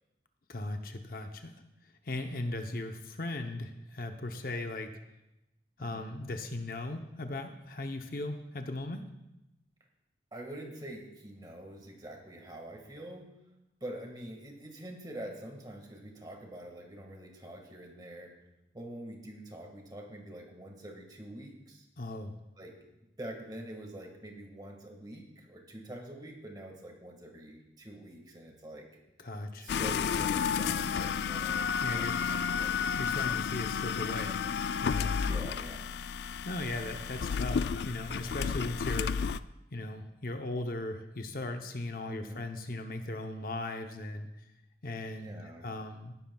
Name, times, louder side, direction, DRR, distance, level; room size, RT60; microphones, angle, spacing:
voice 1, 0.5-1.5 1.8-4.9 5.8-9.0 22.0-22.4 29.2-29.8 31.8-32.2 33.0-34.4 34.8-35.2 36.4-39.3 39.7-44.5 44.8-46.1, left 2 dB, 50° left, 5 dB, 0.8 m, -38 dB
voice 2, 10.3-13.3 13.8-18.3 18.7-21.9 22.6-22.8 23.2-28.9 29.6-33.0 35.2-35.9 42.1-42.4 45.2-45.7, right 1 dB, 20° right, 2 dB, 1.8 m, -45 dB
sound 1, 29.7-39.4, left 6 dB, 70° left, 0.3 m, -32 dB
17.5 x 11.0 x 2.3 m, 0.92 s
head